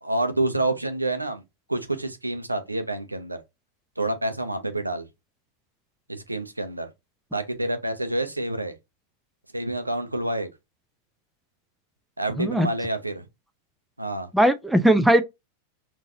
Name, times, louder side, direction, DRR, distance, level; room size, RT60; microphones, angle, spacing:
voice 1, 0.0-1.4 1.7-3.4 4.0-5.1 6.1-6.9 7.3-8.7 9.5-10.5 12.2-13.3 14.0-14.3, right 2 dB, 85° right, 0.7 m, -28 dB
voice 2, 12.4-12.7 14.3-15.2, right 1 dB, 5° right, 0.4 m, -19 dB
3.8 x 2.6 x 2.5 m
figure-of-eight pair, 90°, 0 cm